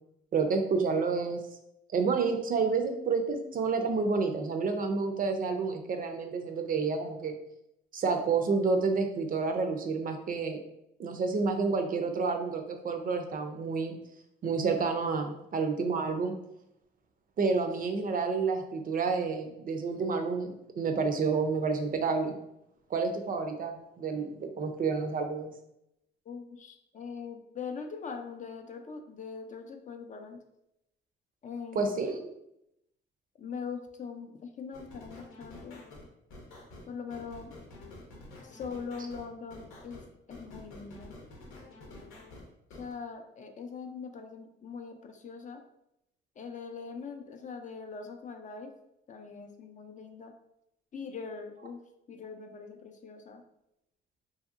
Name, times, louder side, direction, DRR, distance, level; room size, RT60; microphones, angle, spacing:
voice 1, 0.3-1.4 1.9-7.4 7.9-10.6 11.0-14.0 14.4-16.3 17.4-22.4 22.9-25.5 31.7-32.2, right 4 dB, 45° right, 5 dB, 0.4 m, -29 dB
voice 2, 26.3-30.4 31.4-31.9 33.4-35.8 36.9-37.5 38.4-40.0 40.3-41.1 42.7-45.6 46.4-48.7 49.1-50.3 50.9-51.8 52.1-53.4, left 5 dB, 40° left, 4 dB, 0.4 m, -42 dB
sound 1, 34.7-42.9, left 2 dB, 85° left, 0.8 m, -49 dB
2.8 x 2.7 x 2.4 m, 0.83 s
cardioid pair, 90°, 20 cm